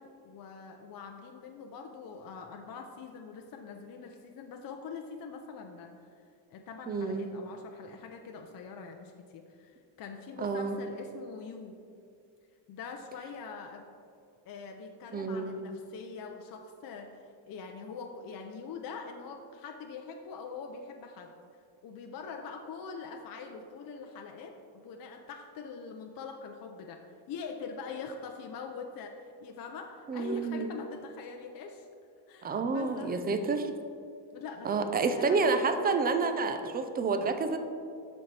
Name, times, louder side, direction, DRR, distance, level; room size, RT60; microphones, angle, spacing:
voice 1, 0.0-5.9 6.5-11.7 12.7-13.8 14.5-21.3 21.8-31.9 32.3-33.1 34.3-35.6, left 5 dB, 45° left, 3 dB, 0.6 m, -43 dB
voice 2, 6.9-7.3 10.4-10.8 15.1-15.7 30.1-30.7 32.4-33.7 34.6-37.6, right 4 dB, 20° right, 7 dB, 0.3 m, -29 dB
12.5 x 4.2 x 3.3 m, 2.4 s
cardioid pair, 140°, 48 cm